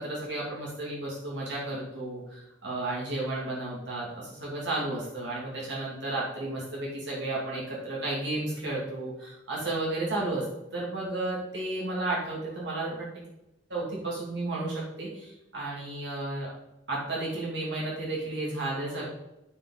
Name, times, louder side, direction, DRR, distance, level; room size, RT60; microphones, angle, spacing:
voice 1, 0.0-10.4 10.7-13.1 13.7-16.5 16.9-19.1, right 2 dB, 70° right, -6 dB, 2.7 m, -33 dB
14.0 x 5.2 x 4.0 m, 0.92 s
head